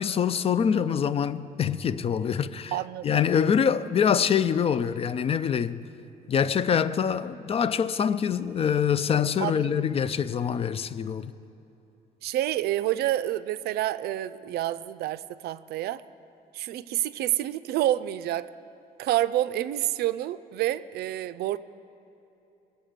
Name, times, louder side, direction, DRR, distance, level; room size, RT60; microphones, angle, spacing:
voice 1, 0.0-2.7 3.0-5.8 6.3-11.3, left 7 dB, 35° left, 0.4 m, -25 dB
voice 2, 2.7-3.1 9.4-9.9 12.2-16.0 16.5-18.5 19.0-21.6, right 14 dB, 70° right, 0.5 m, -28 dB
22.5 x 7.9 x 5.1 m
cardioid pair, 110°, 17 cm